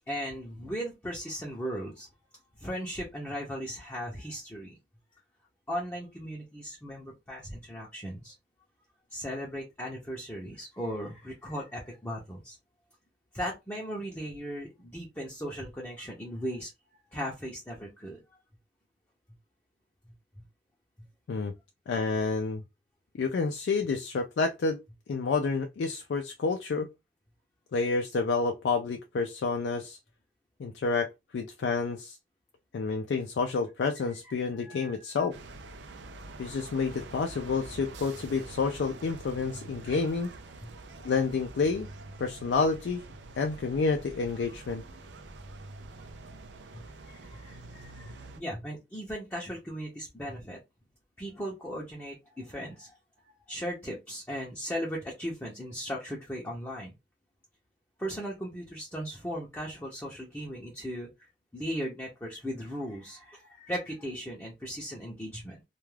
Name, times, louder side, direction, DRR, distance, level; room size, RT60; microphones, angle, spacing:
voice 1, 0.1-2.1 2.6-4.8 5.7-8.3 9.1-12.6 13.3-16.7 17.1-18.2 34.2-35.1 40.6-40.7 46.7-50.6 51.2-53.0 53.5-56.9 58.0-61.1 61.5-65.6, equal, 10° left, 0.6 m, -37 dB
voice 2, 21.9-22.6 23.2-24.8 25.1-26.9 27.7-30.0 30.6-32.2 32.7-35.4 36.4-40.3 41.0-41.9 42.2-43.0 43.4-44.8, left 4 dB, 80° left, 0.4 m, -29 dB
sound 1, 35.3-48.4, right 2 dB, 85° right, 0.5 m, -46 dB
2.3 x 2.3 x 3.1 m
head